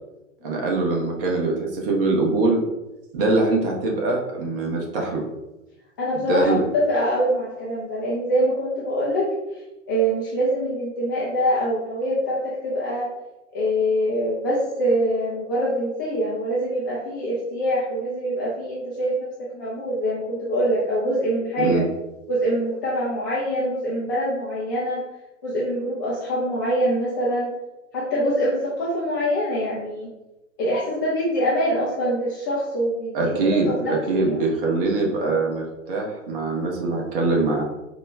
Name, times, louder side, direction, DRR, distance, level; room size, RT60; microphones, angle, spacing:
voice 1, 0.4-2.6 3.1-5.3 6.3-6.6 21.6-21.9 33.1-37.6, right 3 dB, 45° right, 0 dB, 1.0 m, -23 dB
voice 2, 6.0-9.3 9.9-13.1 13.5-21.8 22.3-25.0 25.4-27.5 27.9-30.1 30.6-33.4 33.7-34.3, equal, 15° left, -7 dB, 0.3 m, -24 dB
4.2 x 2.1 x 3.3 m, 0.99 s
figure-of-eight pair, 100°, 39 cm